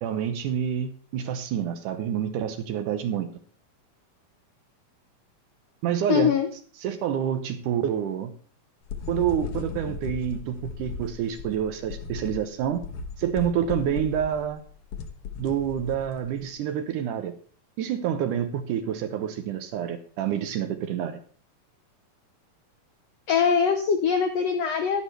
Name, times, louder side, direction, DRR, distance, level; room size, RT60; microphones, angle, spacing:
voice 1, 0.0-3.3 5.8-6.3 6.8-8.3 9.1-12.8 13.2-14.6 15.4-17.3 17.8-21.2, right 9 dB, 75° right, 9 dB, 2.1 m, -28 dB
voice 2, 6.1-6.5 23.3-25.0, left 7 dB, 90° left, 6 dB, 1.4 m, -22 dB
sound 1, 8.8-16.4, left 5 dB, 70° left, 1.3 m, -37 dB
11.0 x 11.0 x 3.2 m, 0.41 s
omnidirectional pair, 4.1 m